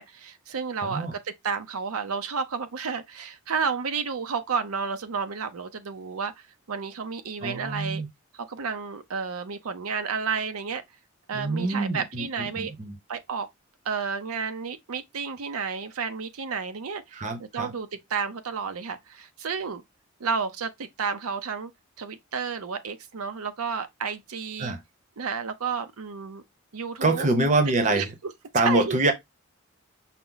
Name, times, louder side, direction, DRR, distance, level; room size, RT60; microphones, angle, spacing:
voice 1, 0.0-8.0 8.3-10.8 11.3-12.7 13.1-13.5 13.8-19.8 20.2-21.7 22.0-24.7 25.2-26.4 26.7-27.3 27.9-28.1 28.6-29.0, right 5 dB, 85° right, 0.6 m, -31 dB
voice 2, 0.8-1.1 7.4-8.1 11.3-12.9 17.1-17.7 24.6-24.8 27.0-28.1 28.5-29.1, right 2 dB, 35° right, 0.7 m, -25 dB
5.8 x 2.0 x 3.8 m
head